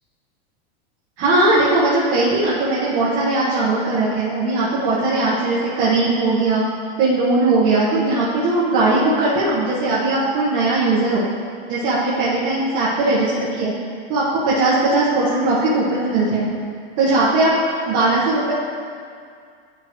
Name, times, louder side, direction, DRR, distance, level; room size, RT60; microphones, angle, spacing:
voice 1, 1.2-6.7 7.0-11.2 11.7-13.7 14.1-16.5 17.0-17.5 17.9-18.5, right 2 dB, 40° right, -8 dB, 1.3 m, -19 dB
11.5 x 4.7 x 3.1 m, 2.2 s
supercardioid pair, 165°, 29 cm